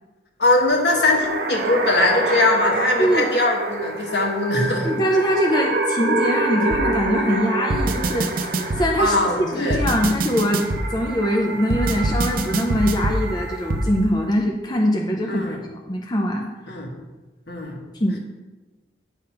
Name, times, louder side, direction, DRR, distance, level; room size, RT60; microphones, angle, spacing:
voice 1, 0.4-4.9 9.0-9.8 15.3-15.6 16.7-16.9 17.5-17.8, left 2 dB, 65° left, 1 dB, 1.4 m, -21 dB
sound 1, 0.7-14.0, right 2 dB, 70° right, 0.9 m, -27 dB
voice 2, 3.0-3.3 4.8-16.5 17.9-18.2, equal, 25° left, 1 dB, 0.6 m, -23 dB
sound 2, 6.7-6.8 7.7-8.8 9.7-10.8 11.7-13.2 13.7-13.8, right 2 dB, 55° right, 0.6 m, -23 dB
8.8 x 3.5 x 5.7 m, 1.2 s
head